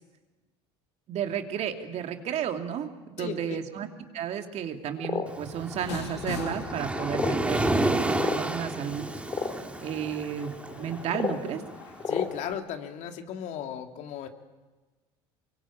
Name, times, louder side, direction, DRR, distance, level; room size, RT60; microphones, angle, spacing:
voice 1, 1.1-3.9 4.1-9.1 9.8-11.6, right 8 dB, 50° right, 5 dB, 2.9 m, -33 dB
voice 2, 3.2-3.6 12.1-14.3, left 9 dB, 60° left, 5 dB, 2.7 m, -35 dB
sound 1, 5.0-5.3 6.2-6.3 7.1-7.4 8.2-8.4 9.3-9.5 11.1-11.4 12.0-12.3, left 5 dB, 35° left, 3.4 m, -30 dB
Waves surf, 5.3-12.4, right 2 dB, 10° right, 2.9 m, -31 dB
sound 2, 5.8-12.2, left 6 dB, 85° left, 3.3 m, -43 dB
24.5 x 23.0 x 8.7 m, 1.2 s
hypercardioid pair, 75°, 14 cm